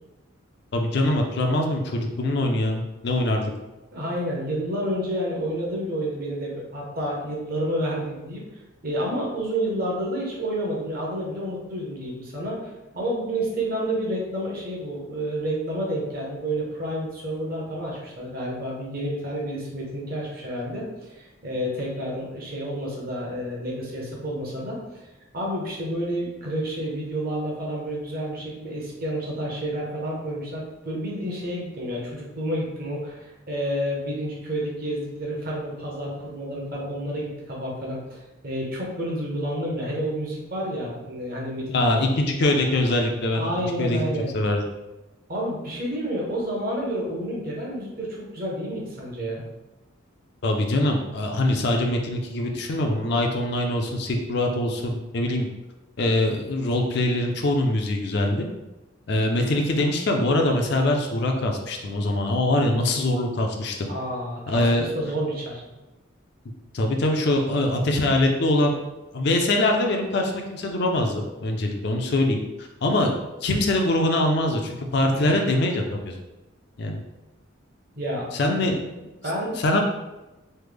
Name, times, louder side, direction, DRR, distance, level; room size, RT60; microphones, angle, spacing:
voice 1, 0.7-3.5 41.7-44.6 50.4-55.5 56.0-58.5 59.1-63.9 64.5-64.9 66.7-68.7 69.1-72.4 72.8-73.1 73.4-76.1 76.8-77.0 78.3-78.8 79.6-79.8, left 1 dB, 55° left, 2 dB, 0.4 m, -23 dB
voice 2, 3.9-8.4 8.8-24.8 25.3-38.2 38.4-41.8 43.3-44.3 45.3-49.4 63.9-65.6 75.1-75.4 78.0-78.6 79.0-79.6, equal, 45° right, -3 dB, 0.8 m, -30 dB
3.2 x 2.1 x 3.3 m, 1.0 s
head